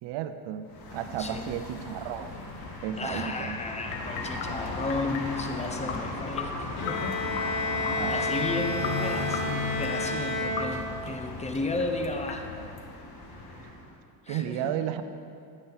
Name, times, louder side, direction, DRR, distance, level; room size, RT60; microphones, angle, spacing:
voice 1, 0.0-2.3 2.8-3.6 8.0-8.3 14.3-15.0, right 10 dB, 60° right, 10 dB, 0.8 m, -33 dB
sound 1, 0.7-13.9, left 3 dB, 45° left, 1.7 m, -37 dB
voice 2, 1.2-1.6 3.0-7.2 7.5-7.8 8.1-12.7 14.2-14.7, left 2 dB, 15° left, 5 dB, 0.9 m, -34 dB
sound 2, 3.8-12.8, left 6 dB, 65° left, 1.2 m, -39 dB
Bowed string instrument, 6.8-11.2, left 2 dB, 85° left, 1.6 m, -31 dB
9.9 x 9.1 x 4.1 m, 2.4 s
supercardioid pair, 100°, 50 cm